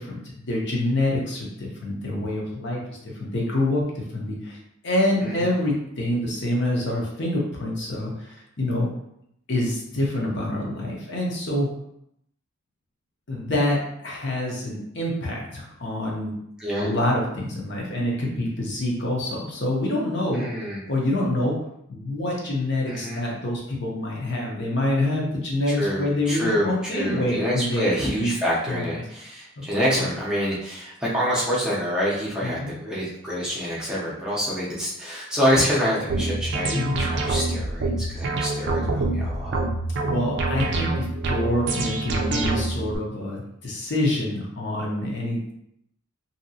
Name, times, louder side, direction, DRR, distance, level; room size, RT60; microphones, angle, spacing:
voice 1, 0.0-4.6 4.8-8.9 9.5-11.7 13.3-16.4 16.8-20.4 20.9-21.6 21.9-27.9 28.2-28.3 28.7-29.0 29.6-29.7 29.9-30.1 32.4-32.7 36.7-37.1 40.1-45.5, left 1 dB, 55° left, -2 dB, 0.7 m, -26 dB
voice 2, 16.6-16.9 20.3-20.9 22.9-23.2 25.7-39.6, equal, 5° right, -7 dB, 0.6 m, -26 dB
sound 1, 36.1-42.9, right 2 dB, 55° right, 0.4 m, -26 dB
2.8 x 2.7 x 2.7 m, 0.77 s
head